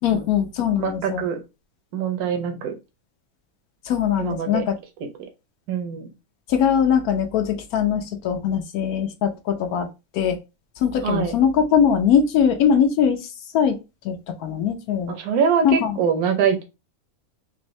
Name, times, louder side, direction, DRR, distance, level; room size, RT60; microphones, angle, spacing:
voice 1, 0.0-1.2 3.9-4.7 6.5-9.9 10.1-10.4 10.8-13.2 13.5-13.8 14.0-14.2 14.4-15.1 15.6-15.9, left 8 dB, 85° left, 1.1 m, -21 dB
voice 2, 0.8-1.4 1.9-2.7 4.2-4.7 5.7-6.1 11.0-11.4 15.1-16.6, right 7 dB, 85° right, 1.3 m, -23 dB
4.3 x 2.6 x 3.1 m
omnidirectional pair, 1.5 m